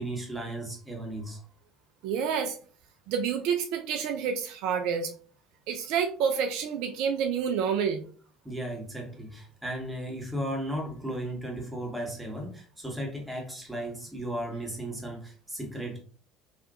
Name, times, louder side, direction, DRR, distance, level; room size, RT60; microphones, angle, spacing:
voice 1, 0.0-1.4 8.4-16.0, right 1 dB, 10° right, 1.5 m, -35 dB
voice 2, 2.0-2.6 3.1-5.1 5.7-8.1, right 7 dB, 70° right, 0.4 m, -28 dB
3.3 x 2.8 x 2.5 m
hypercardioid pair, 70°, 0 cm